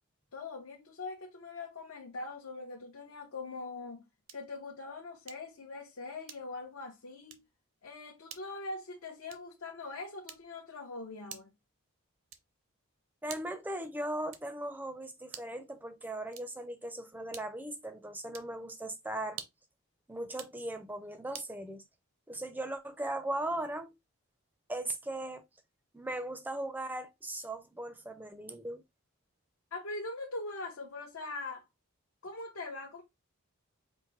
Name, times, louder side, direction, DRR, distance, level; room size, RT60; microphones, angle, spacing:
voice 1, 0.3-4.1 4.3-7.4 7.8-11.5 29.7-31.7 32.2-33.0, left 3 dB, 70° left, 0.8 m, -42 dB
sound 1, 4.2-4.6 5.3-5.6 6.2-6.7 7.2-7.5 8.3-8.6 9.3-9.6 10.3-10.7 11.3-11.7 12.3-12.6 13.3-13.7 14.3-14.7 15.3-15.6 16.3-16.7 17.3-17.7 18.3-18.6 19.3-19.7 20.3-20.6 21.3-21.6, right 9 dB, 65° right, 0.6 m, -49 dB
voice 2, 13.2-19.4 20.1-21.8 22.3-23.9 24.7-25.4 25.9-28.8, right 1 dB, 10° right, 0.4 m, -38 dB
4.5 x 2.6 x 3.0 m
head